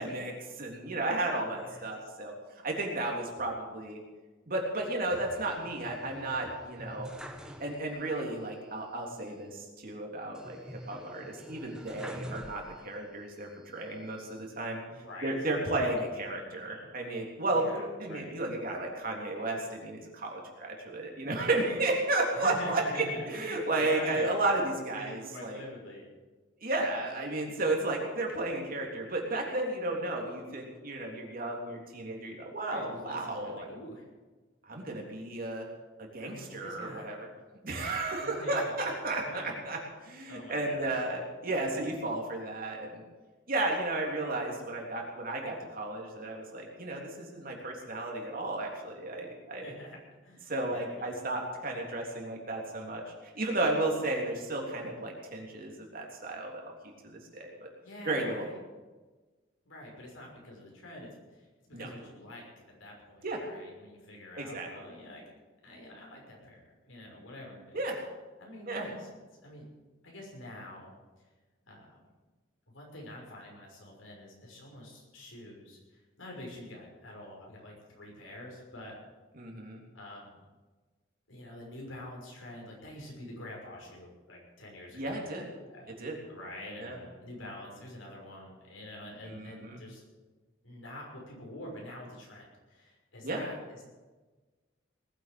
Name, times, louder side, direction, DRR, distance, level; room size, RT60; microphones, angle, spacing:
voice 1, 0.0-2.3 2.6-4.0 4.5-7.1 7.6-25.6 26.6-33.7 34.7-35.7 36.0-37.3 37.6-43.0 43.5-49.7 50.5-56.7 57.0-57.7 58.1-58.4 61.7-61.9 63.2-63.4 64.4-64.7 67.7-68.0 68.7-68.9 79.3-79.8 84.9-85.5 86.0-86.2 86.8-87.0 89.2-89.8 93.2-93.4, right 2 dB, 45° right, 0 dB, 3.4 m, -33 dB
voice 2, 1.6-1.9 14.9-15.3 15.7-15.9 16.3-16.9 17.5-17.8 18.1-18.3 22.3-24.4 24.9-26.0 27.4-27.7 32.7-34.1 36.2-37.1 38.2-38.8 39.2-39.6 40.3-40.9 49.6-50.0 50.2-51.0 57.8-58.6 59.7-62.5 62.8-65.2 65.6-67.8 68.4-69.1 69.4-69.7 70.0-70.9 71.7-72.0 72.7-78.9 79.9-80.3 81.3-85.2 85.7-85.9 86.3-90.0 90.6-93.8, left 1 dB, 85° left, -1 dB, 6.0 m, -46 dB
sound 1, 5.1-8.2 8.5-8.6 10.4-13.1 13.6-14.5, equal, 5° right, 1.4 m, -46 dB
19.5 x 8.6 x 7.8 m, 1.3 s
head